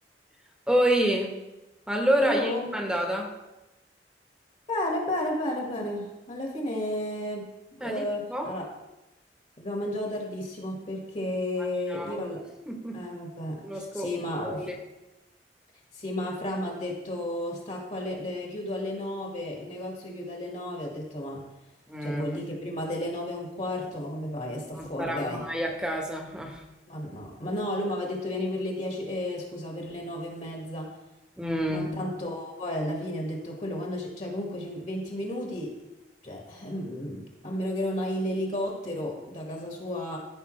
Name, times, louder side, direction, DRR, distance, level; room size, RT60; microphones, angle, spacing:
voice 1, 0.7-1.3 1.9-3.3 7.8-8.5 11.9-12.2 12.7-13.0 13.6-14.1 14.4-14.8 21.9-22.2 24.7-26.6 31.4-31.9, equal, 5° right, 1 dB, 1.2 m, -28 dB
voice 2, 2.2-2.7 4.7-7.4 7.8-8.7 9.6-12.4 12.9-14.6 15.9-21.4 22.0-25.4 26.9-30.9 31.7-35.7 36.2-40.2, left 1 dB, 45° left, -1 dB, 1.7 m, -32 dB
14.0 x 5.5 x 3.2 m, 1.0 s
head